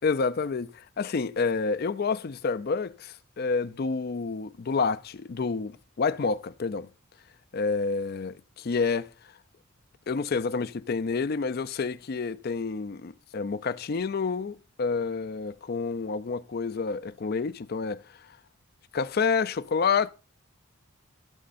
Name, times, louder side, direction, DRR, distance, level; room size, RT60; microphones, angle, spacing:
voice 1, 0.0-6.9 7.5-9.1 10.1-18.3 18.9-20.1, left 4 dB, 45° left, 0.4 m, -29 dB
15.5 x 6.5 x 2.5 m
head